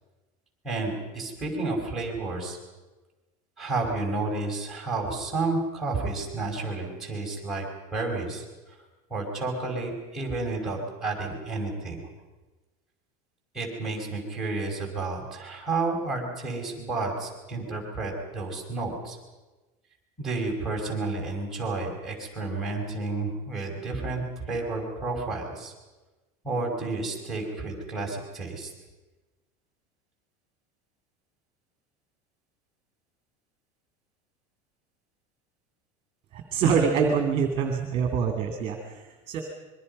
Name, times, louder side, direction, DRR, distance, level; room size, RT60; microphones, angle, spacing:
voice 1, 0.6-2.6 3.6-7.6 7.9-8.4 9.1-12.0 13.5-19.2 20.2-24.2 24.5-25.7 26.4-28.7, right 3 dB, ahead, 0 dB, 5.0 m, -31 dB
voice 2, 36.3-39.4, right 6 dB, 30° right, 4 dB, 2.4 m, -25 dB
26.5 x 22.5 x 5.4 m, 1.2 s
cardioid pair, 170°, 18 cm